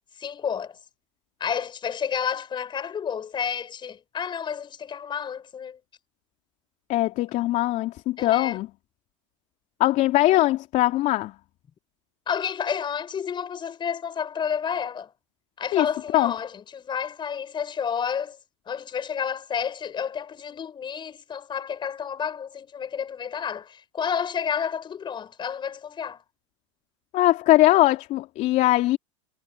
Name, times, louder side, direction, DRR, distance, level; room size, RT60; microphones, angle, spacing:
voice 1, 0.2-0.8 1.4-5.8 8.2-8.6 12.3-15.1 15.6-18.4 18.7-26.2, left 7 dB, 30° left, 5.7 m, -30 dB
voice 2, 6.9-8.7 9.8-11.3 15.7-15.9 16.1-16.3 27.1-29.0, left 16 dB, 50° left, 3.1 m, -21 dB
hypercardioid pair, 90°, 16 cm